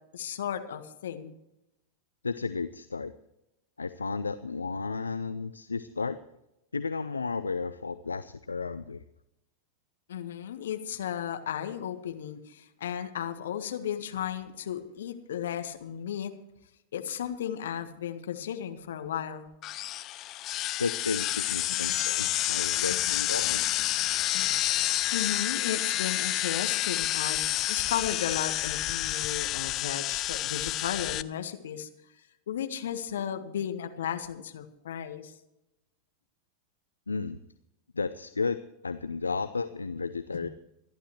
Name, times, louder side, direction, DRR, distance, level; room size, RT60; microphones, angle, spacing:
voice 1, 0.1-1.3 10.1-16.3 16.9-19.5 22.9-23.0 24.0-24.5 25.1-31.9 32.5-35.3 40.3-40.5, left 9 dB, 60° left, 7 dB, 1.6 m, -35 dB
voice 2, 2.2-3.1 3.8-6.2 6.7-9.0 20.8-23.6 37.1-37.4 37.9-38.6 38.8-40.5, left 4 dB, 75° left, 11 dB, 0.6 m, -33 dB
sound 1, 19.6-31.2, left 15 dB, 35° left, 0.6 m, -29 dB
26.5 x 11.5 x 3.2 m, 0.87 s
figure-of-eight pair, 90°, 0 cm